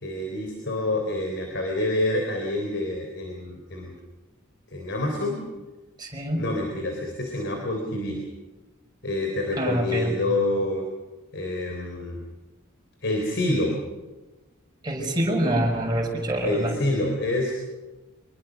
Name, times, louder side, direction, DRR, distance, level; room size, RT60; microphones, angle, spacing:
voice 1, 0.0-3.9 4.7-5.4 6.4-8.2 9.0-10.9 11.3-12.2 13.0-13.8 16.4-17.6, left 1 dB, 60° left, 2 dB, 3.9 m, -27 dB
voice 2, 6.0-6.4 9.6-10.1 14.8-16.7, right 1 dB, 20° right, -1 dB, 5.9 m, -25 dB
25.5 x 21.5 x 6.4 m, 1.2 s
head